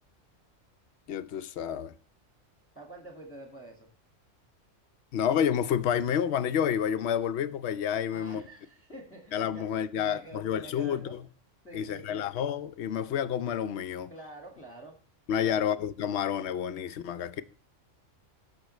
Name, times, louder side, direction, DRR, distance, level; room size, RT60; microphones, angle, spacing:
voice 1, 1.1-1.9 5.1-8.4 9.3-11.2 11.7-14.1 15.3-17.4, left 9 dB, 65° left, 0.9 m, -29 dB
voice 2, 2.8-3.9 8.1-9.7 9.9-11.2 11.6-12.3 14.1-15.0 15.4-15.7, right 2 dB, 10° left, 1.8 m, -47 dB
16.5 x 6.3 x 3.1 m
omnidirectional pair, 1.3 m